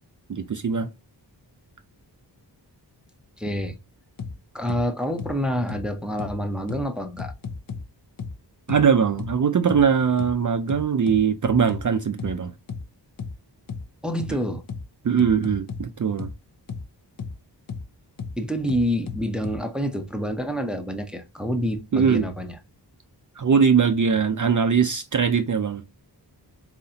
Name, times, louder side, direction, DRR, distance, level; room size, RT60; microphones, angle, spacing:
voice 1, 0.3-0.9 8.7-12.5 14.3-14.4 15.0-16.3 21.9-22.3 23.4-25.8, right 6 dB, 45° right, 0.5 m, -21 dB
voice 2, 3.4-3.8 4.5-7.3 14.0-14.6 18.4-22.6, equal, ahead, 0.6 m, -27 dB
sound 1, 4.2-4.3 4.7-4.8 5.2-5.3 5.7-5.8 6.2-6.3 6.7-6.8 7.2-7.8 8.2-8.3 8.7-8.8 9.2-9.3 9.7-9.8 10.2-10.3 10.7-11.8 12.2-12.3 12.7-12.8 13.2-13.3 13.7-13.8 14.2-14.3 14.7-14.8 15.2-15.8 16.2-16.3 16.7-16.8 17.2-17.3 17.7-17.8 18.2-18.3 18.7-19.6, left 5 dB, 55° left, 0.7 m, -33 dB
4.2 x 4.0 x 2.8 m
wide cardioid pair, 100°, 43 cm